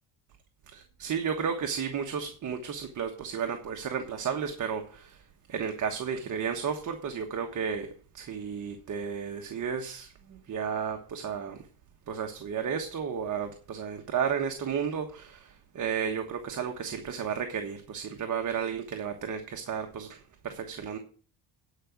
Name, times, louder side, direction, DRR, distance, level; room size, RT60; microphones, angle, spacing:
voice 1, 0.7-5.2 5.5-7.9 8.1-11.6 12.1-21.0, right 7 dB, 40° right, 4 dB, 1.3 m, -33 dB
10.0 x 5.1 x 8.1 m, 0.42 s
cardioid pair, 115°, 47 cm